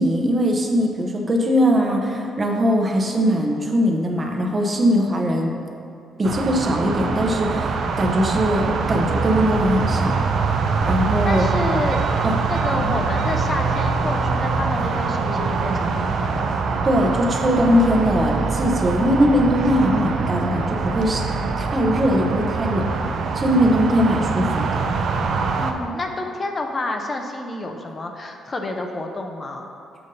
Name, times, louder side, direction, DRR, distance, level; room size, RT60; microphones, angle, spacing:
voice 1, 0.0-5.6 6.2-10.1 10.8-11.8 12.2-12.4 12.8-12.9 16.8-21.2 21.6-22.8 23.3-24.6, equal, 35° right, 1 dB, 0.7 m, -20 dB
sound 1, 6.2-25.7, right 4 dB, 65° right, 0.4 m, -23 dB
voice 2, 11.3-12.0 12.5-16.5 25.6-29.7, left 2 dB, 35° left, 3 dB, 0.5 m, -29 dB
6.8 x 2.6 x 5.3 m, 2.5 s
cardioid pair, 90°, 0 cm